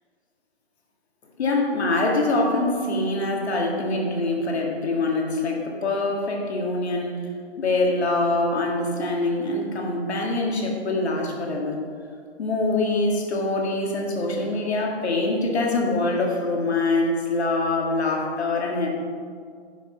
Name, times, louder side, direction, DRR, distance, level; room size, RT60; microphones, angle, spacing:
voice 1, 1.4-7.2 7.6-11.8 12.4-18.9, left 2 dB, 80° left, 0 dB, 2.1 m, -24 dB
9.9 x 5.9 x 5.4 m, 2.2 s
hypercardioid pair, 155°, 32 cm